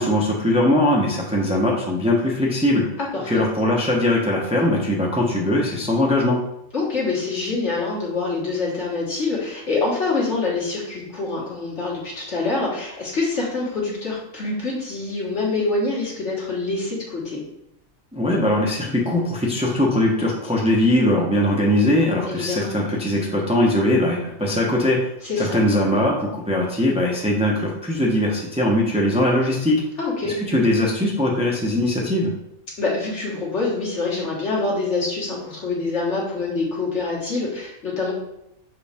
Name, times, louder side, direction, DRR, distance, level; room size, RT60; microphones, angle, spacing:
voice 1, 0.0-2.9 3.3-6.4 18.1-25.1 25.4-29.8 30.3-32.3, left 1 dB, 5° right, -2 dB, 0.8 m, -20 dB
voice 2, 3.0-3.4 6.7-17.4 22.2-22.8 25.2-25.6 30.0-30.3 32.8-38.1, left 3 dB, 65° left, -4 dB, 2.2 m, -25 dB
6.2 x 4.8 x 3.5 m, 0.82 s
omnidirectional pair, 1.3 m